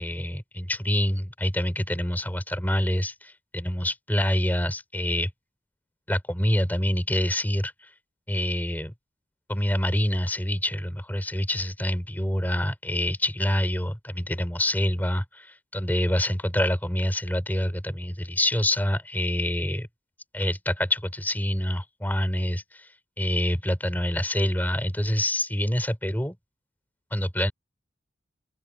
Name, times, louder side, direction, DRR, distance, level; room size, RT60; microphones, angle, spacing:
voice 1, 0.0-5.3 6.1-7.9 8.3-8.9 9.5-19.9 20.3-22.9 23.2-26.4 27.1-27.5, left 1 dB, 10° left, 4.2 m, -26 dB
open air
head